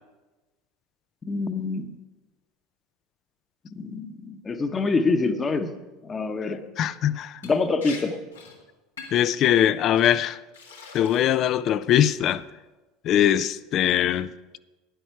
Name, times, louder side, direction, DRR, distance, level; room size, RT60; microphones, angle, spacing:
voice 1, 1.2-1.9 3.7-5.7 6.0-6.6 7.4-8.2, left 3 dB, 25° left, 1.0 m, -26 dB
voice 2, 6.8-7.4 9.1-10.4 10.9-12.4 13.0-14.3, left 10 dB, 45° left, 0.5 m, -21 dB
Liquid, 7.4-7.6 7.8-8.0 8.3-8.6 9.0-9.3 10.0-10.1 10.5-11.5 11.8-12.3, left 5 dB, 85° left, 1.9 m, -42 dB
12.5 x 10.0 x 4.7 m
figure-of-eight pair, 75°, 0 cm